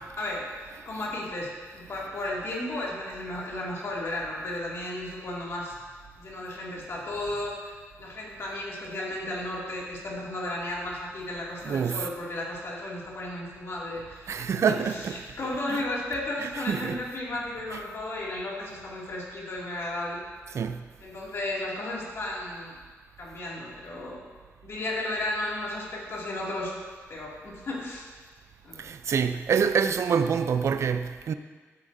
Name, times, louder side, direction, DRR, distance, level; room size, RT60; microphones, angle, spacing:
voice 1, 0.0-5.7 6.2-14.3 14.7-20.2 21.0-22.7 23.2-24.2 24.6-26.8 27.1-28.1 28.6-28.9, left 1 dB, 60° left, 2.4 m, -34 dB
voice 2, 11.7-12.0 14.3-15.2 15.7-15.8 16.7-17.0 20.5-20.8 28.8-31.3, right 6 dB, 65° right, 0.5 m, -26 dB
13.0 x 8.2 x 2.7 m
cardioid pair, 100°, 5 cm